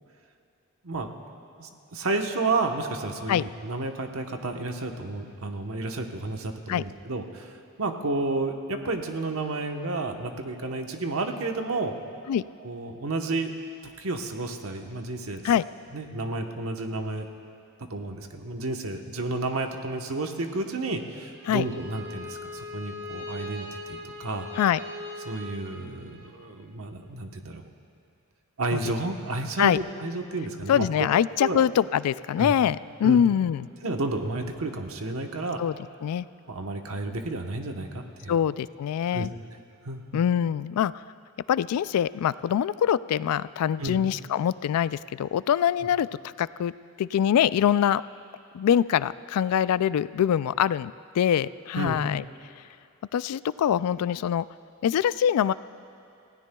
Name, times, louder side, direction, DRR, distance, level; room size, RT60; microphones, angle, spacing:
voice 1, 1.6-11.9 12.6-13.5 13.8-15.4 15.9-17.3 17.9-24.5 25.2-27.7 28.6-31.1 31.4-31.6 32.4-32.5 33.0-33.2 33.8-35.6 36.5-38.4 39.1-39.3 39.8-40.2 43.8-44.0 51.7-52.0, right 2 dB, 75° right, 4 dB, 1.1 m, -31 dB
Bowed string instrument, 21.3-26.3, left 1 dB, 55° right, 2.5 m, -40 dB
voice 2, 30.7-33.7 35.6-35.7 36.0-36.3 38.3-39.3 40.1-40.9 41.5-46.7 47.0-48.0 48.5-52.2 53.1-54.5 54.8-55.5, left 9 dB, 90° left, 17 dB, 0.3 m, -24 dB
28.5 x 16.5 x 2.3 m, 2.6 s
head